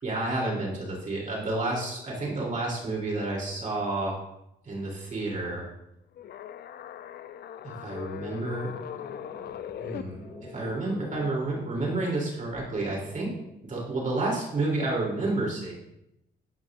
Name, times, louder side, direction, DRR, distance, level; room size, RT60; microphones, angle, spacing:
voice 1, 0.0-4.2 4.6-5.7 7.6-8.7 9.8-13.3 13.6-15.7, right 2 dB, 40° right, -3 dB, 3.0 m, -30 dB
sound 1, 6.2-10.0, left 10 dB, 55° left, 0.4 m, -39 dB
sound 2, 8.6-13.6, left 3 dB, 35° left, 2.2 m, -47 dB
12.5 x 4.9 x 2.5 m, 0.82 s
cardioid pair, 90°, 20 cm